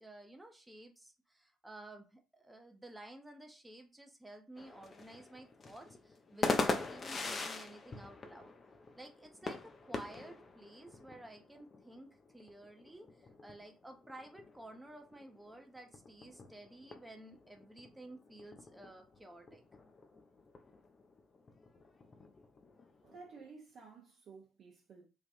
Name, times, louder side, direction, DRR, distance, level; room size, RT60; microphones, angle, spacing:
voice 1, 0.0-8.5 8.9-19.6, right 1 dB, 10° right, 0.6 m, -53 dB
sound 1, 4.6-23.5, left 3 dB, 35° left, 0.5 m, -43 dB
voice 2, 23.0-25.1, right 4 dB, 50° right, 0.6 m, -54 dB
3.3 x 2.5 x 2.5 m
figure-of-eight pair, 45°, 0 cm